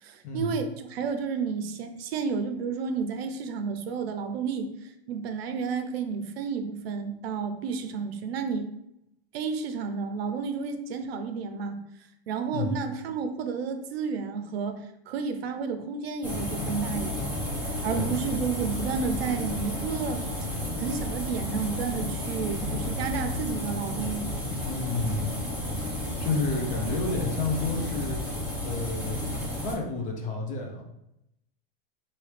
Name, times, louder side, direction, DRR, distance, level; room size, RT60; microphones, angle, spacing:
voice 1, 0.0-8.7 9.3-11.8 12.3-17.3 17.8-20.2 20.8-24.3, right 5 dB, 75° right, 7 dB, 0.7 m, -31 dB
sound 1, 16.2-29.7, left 1 dB, 5° right, 0.9 m, -32 dB
voice 2, 24.6-25.3 26.2-28.2 28.6-30.8, left 3 dB, 25° left, 1 dB, 0.7 m, -30 dB
4.7 x 2.8 x 3.3 m, 0.83 s
supercardioid pair, 155°, 30 cm